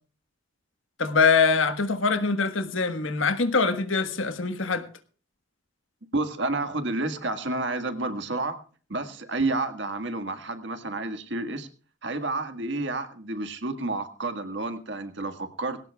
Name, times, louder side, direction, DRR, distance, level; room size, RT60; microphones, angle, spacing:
voice 1, 1.0-4.9, left 4 dB, 80° left, 1.4 m, -23 dB
voice 2, 6.1-8.6 8.9-11.7 12.0-15.8, right 2 dB, 65° right, 1.8 m, -30 dB
21.5 x 17.5 x 2.4 m
head